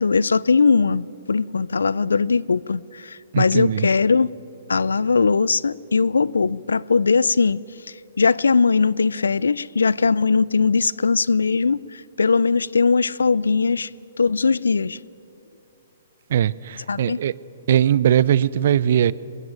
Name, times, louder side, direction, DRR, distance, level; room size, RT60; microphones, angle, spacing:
voice 1, 0.0-4.3 4.7-7.6 8.2-13.9 14.2-15.0 16.9-17.2, left 4 dB, 80° left, 23 dB, 0.5 m, -20 dB
voice 2, 3.3-3.9 16.3-17.3 17.7-19.1, right 10 dB, 55° right, 21 dB, 0.6 m, -20 dB
23.0 x 21.0 x 9.0 m, 2.9 s
hypercardioid pair, 125°, 0 cm